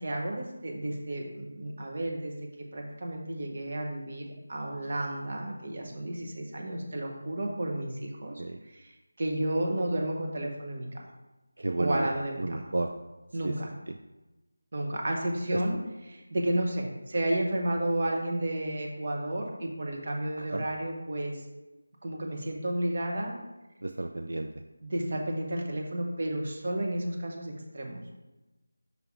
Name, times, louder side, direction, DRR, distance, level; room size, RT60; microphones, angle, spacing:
voice 1, 0.0-2.3 2.7-8.4 8.7-8.9 9.2-10.9 11.8-12.7 13.3-13.7 14.7-15.8 16.1-21.4 22.0-23.3 24.8-28.0, right 1 dB, 40° right, 0 dB, 1.1 m, -32 dB
voice 2, 11.6-12.1 12.4-12.9 13.4-13.5 15.5-15.6 20.4-20.6 23.8-24.5, right 2 dB, 70° right, 5 dB, 0.4 m, -31 dB
5.5 x 3.9 x 4.7 m, 1.1 s
figure-of-eight pair, 175°, 0 cm